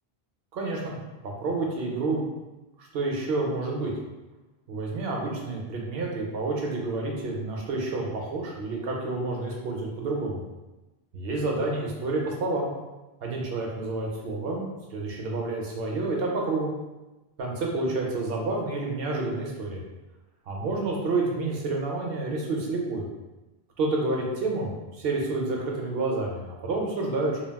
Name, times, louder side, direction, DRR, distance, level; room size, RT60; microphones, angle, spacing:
voice 1, 0.5-1.0 1.2-2.3 2.8-3.9 4.7-10.4 11.1-12.7 13.2-16.7 17.4-19.8 20.5-23.0 23.8-27.4, right 2 dB, 70° right, -1 dB, 0.8 m, -29 dB
2.3 x 2.2 x 3.4 m, 1.1 s
omnidirectional pair, 1.1 m